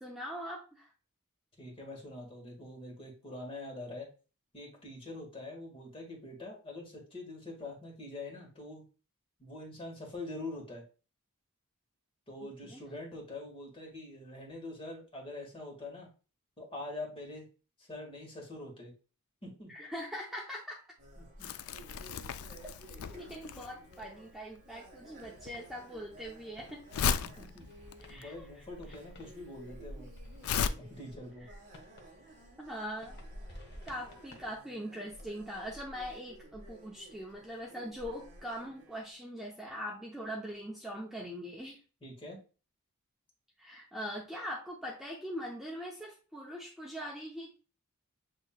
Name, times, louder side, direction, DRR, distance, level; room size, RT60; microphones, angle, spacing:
voice 1, 0.0-0.9 12.6-12.8 19.7-20.8 23.1-26.8 28.1-28.5 31.5-31.6 32.6-33.2 33.8-41.8 43.6-47.6, equal, ahead, -3 dB, 0.7 m, -42 dB
voice 2, 1.6-4.1 4.5-8.8 9.4-10.8 12.3-16.1 16.6-17.5 17.8-18.9 19.4-19.7 21.2-21.5 27.4-27.7 28.1-30.1 30.8-31.4 42.0-42.4, left 2 dB, 25° left, -1 dB, 1.6 m, -44 dB
sound 1, 21.0-39.1, right 1 dB, 35° right, 1.5 m, -53 dB
Crumpling crinkling, 21.4-30.7, left 7 dB, 70° left, 0.4 m, -36 dB
sound 2, 25.2-34.6, left 1 dB, 50° left, 0.9 m, -57 dB
7.5 x 3.1 x 2.3 m, 0.35 s
head